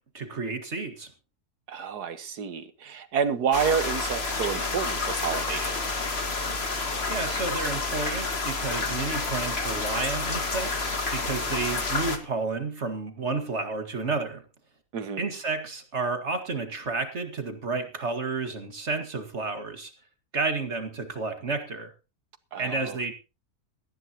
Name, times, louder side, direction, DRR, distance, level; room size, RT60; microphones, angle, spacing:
voice 1, 0.1-1.1 7.1-14.4 15.2-19.9 20.3-21.9 22.6-23.1, right 3 dB, 45° right, 2.1 m, -31 dB
voice 2, 1.7-5.8 14.9-15.3 22.5-23.0, right 7 dB, 85° right, 1.9 m, -29 dB
sound 1, 3.5-12.2, left 3 dB, 40° left, 2.0 m, -29 dB
18.0 x 14.0 x 3.0 m
omnidirectional pair, 1.7 m